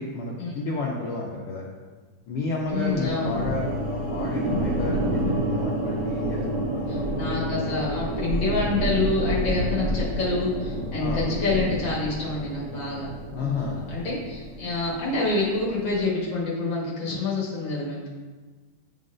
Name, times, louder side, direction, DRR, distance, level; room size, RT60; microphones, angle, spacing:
voice 1, 0.0-1.6 2.3-7.2 11.0-11.3 13.3-13.8, left 3 dB, 80° left, -3 dB, 1.3 m, -31 dB
voice 2, 2.7-3.3 6.9-13.1 13.4-18.1, left 3 dB, 50° left, -5 dB, 1.5 m, -27 dB
sound 1, 2.7-15.0, right 1 dB, 60° right, 1.7 m, -32 dB
Thunder, 2.8-16.0, equal, 35° right, 0.9 m, -32 dB
10.0 x 3.9 x 2.5 m, 1.3 s
omnidirectional pair, 3.3 m